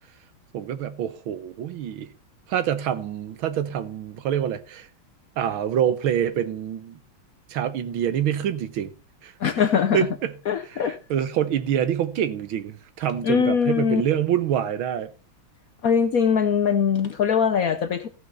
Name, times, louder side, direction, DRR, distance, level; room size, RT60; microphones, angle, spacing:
voice 1, 0.5-2.1 2.5-4.9 5.4-7.0 7.5-8.9 9.2-9.3 9.9-10.3 10.7-15.1, right 9 dB, 80° right, 1.8 m, -26 dB
voice 2, 9.4-10.1 10.5-11.0 13.2-14.0 15.8-18.1, left 7 dB, 60° left, 1.0 m, -21 dB
14.5 x 5.9 x 5.5 m
omnidirectional pair, 2.2 m